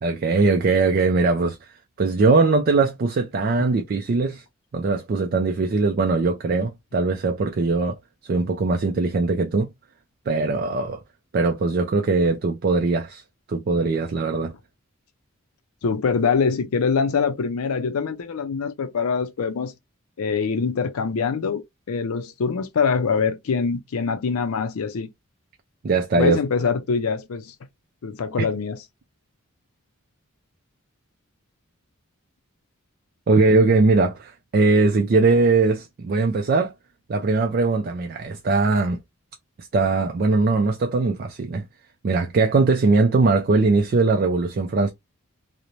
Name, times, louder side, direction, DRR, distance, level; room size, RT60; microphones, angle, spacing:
voice 1, 0.0-4.4 4.7-8.0 8.2-9.7 10.3-11.0 11.3-13.2 13.5-14.5 25.8-26.4 33.3-36.7 37.1-39.0 39.7-41.6 42.0-44.9, right 3 dB, 45° right, 0.3 m, -20 dB
voice 2, 15.8-19.7 20.2-25.1 26.1-27.5 28.0-28.8, left 5 dB, 85° left, 0.5 m, -24 dB
3.0 x 2.1 x 2.5 m
head